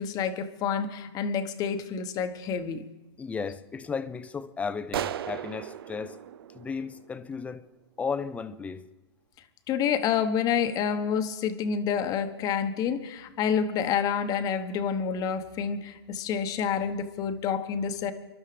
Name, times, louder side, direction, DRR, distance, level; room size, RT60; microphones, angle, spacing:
voice 1, 0.0-2.8 9.7-18.1, left 7 dB, 25° left, 1.1 m, -28 dB
voice 2, 3.2-6.2 6.5-7.7 8.0-8.9, left 5 dB, 10° left, 0.5 m, -34 dB
sound 1, 4.9-7.5, right 10 dB, 60° right, 0.6 m, -36 dB
27.0 x 12.5 x 3.4 m
hypercardioid pair, 125°, 14 cm